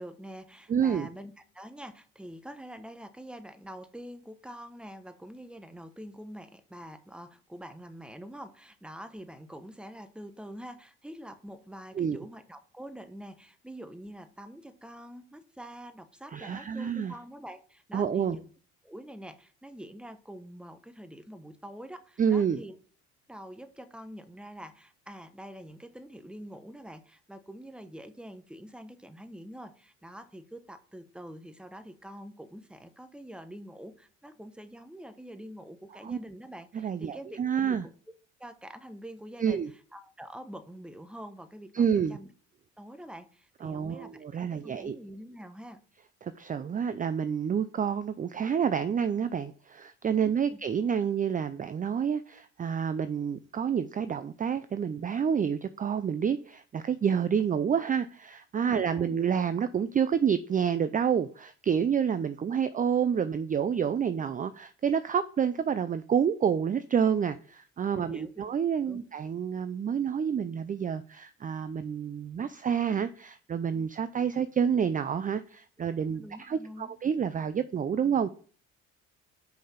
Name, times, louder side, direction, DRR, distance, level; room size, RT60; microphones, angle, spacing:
voice 1, 0.0-18.5 18.8-22.8 23.3-37.9 38.4-39.6 39.9-41.8 42.1-42.3 42.8-45.8 50.2-50.6 58.6-59.1 67.9-68.3 68.9-69.1 76.1-76.9, equal, 5° right, 1.0 m, -45 dB
voice 2, 0.7-1.1 12.0-12.2 16.3-17.1 17.9-18.4 22.2-22.6 36.0-36.2 36.7-37.9 39.4-39.7 41.7-42.2 43.6-45.0 46.2-78.3, right 7 dB, 25° right, 0.5 m, -28 dB
5.7 x 5.4 x 5.7 m
supercardioid pair, 80°, 31 cm